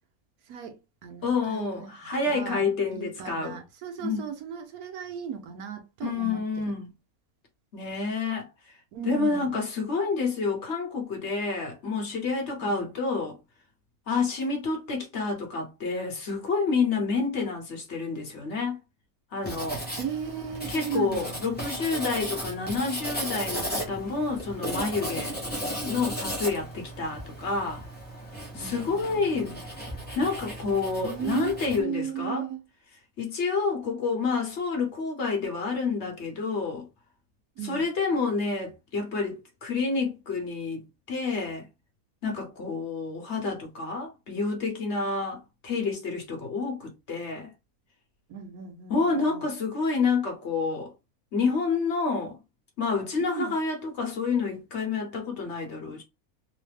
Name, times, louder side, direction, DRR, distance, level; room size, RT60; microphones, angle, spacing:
voice 1, 0.5-1.7 2.0-2.6 2.9-6.4 8.9-9.6 12.6-12.9 20.0-21.4 28.6-29.6 31.0-32.6 37.6-37.9 48.3-49.5 53.2-53.5, right 8 dB, 80° right, 1.2 m, -36 dB
voice 2, 1.2-3.6 4.0-4.2 6.0-6.9 7.7-8.5 9.0-13.4 14.1-18.8 19.3-19.8 20.7-25.4 25.8-27.8 28.5-29.5 30.1-32.5 33.2-36.9 37.6-41.7 42.2-47.5 48.9-50.9 51.3-52.4 52.8-56.0, left 4 dB, 55° left, 1.2 m, -29 dB
Writing, 19.4-31.8, equal, 10° left, 0.7 m, -35 dB
3.2 x 2.1 x 3.3 m
omnidirectional pair, 1.5 m